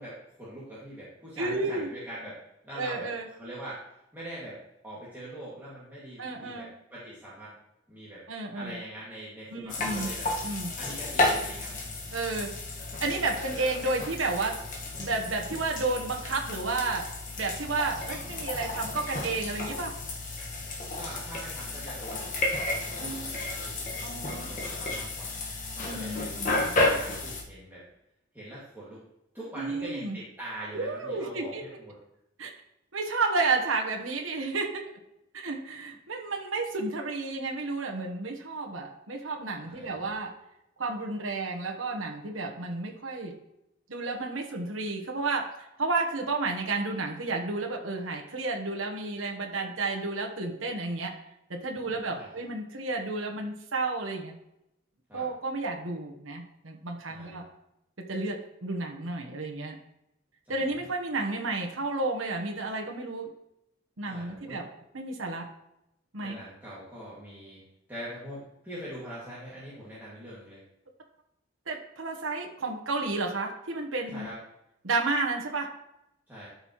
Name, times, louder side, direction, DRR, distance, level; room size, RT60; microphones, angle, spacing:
voice 1, 0.0-3.1 3.4-3.8 4.1-7.6 7.9-8.2 8.5-10.3 10.8-11.7 13.2-13.4 21.0-22.3 22.6-23.8 24.3-25.4 25.7-26.4 26.9-27.8 28.3-29.0 29.3-32.0 39.7-40.0 52.1-52.4 55.1-55.3 57.1-57.4 60.4-60.7 64.0-64.6 66.2-67.6 67.9-70.6 74.1-74.4 76.3-76.5, right 1 dB, 10° right, -10 dB, 2.2 m, -43 dB
voice 2, 1.4-1.9 2.8-3.3 6.2-6.7 8.3-8.8 9.5-10.1 10.4-10.7 12.1-12.5 13.0-14.6 15.0-17.1 17.4-19.9 20.4-20.5 23.0-23.3 24.0-24.5 25.8-26.7 29.6-30.2 30.7-31.6 32.4-32.5 32.9-34.8 35.3-40.3 40.8-43.3 43.9-51.1 51.5-54.3 55.1-57.4 58.0-59.8 60.5-63.3 64.0-64.7 64.9-65.5 66.1-66.4 71.7-74.3 74.8-75.7, right 3 dB, 85° right, 1 dB, 1.2 m, -31 dB
sound 1, 9.7-27.4, left 2 dB, 45° left, 1.6 m, -32 dB
12.5 x 5.4 x 3.1 m, 0.83 s
head